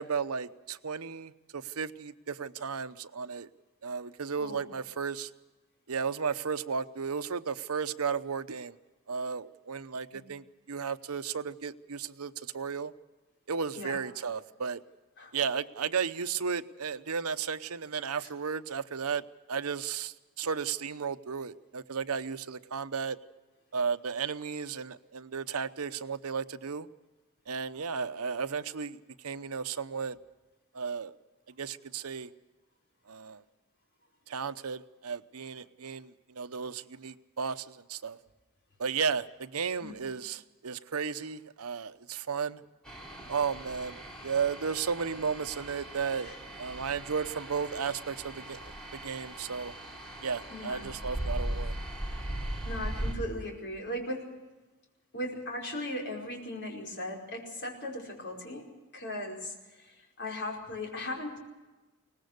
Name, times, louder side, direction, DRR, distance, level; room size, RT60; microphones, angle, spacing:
voice 1, 0.0-3.5 3.8-5.3 5.9-8.7 9.1-12.9 13.5-14.8 15.3-19.2 19.5-23.2 23.7-26.9 27.5-30.2 30.7-31.1 31.6-32.3 33.1-33.4 34.3-38.2 38.8-42.6 43.3-44.0 44.2-46.3 46.6-48.6 48.9-49.7 50.2-51.7, right 6 dB, 85° right, 12 dB, 0.8 m, -34 dB
sound 1, 42.9-53.2, right 1 dB, 5° left, 4.4 m, -39 dB
voice 2, 50.5-50.9 52.6-54.3 55.1-61.4, left 1 dB, 55° left, 0 dB, 5.1 m, -38 dB
22.5 x 19.0 x 6.6 m, 1.2 s
head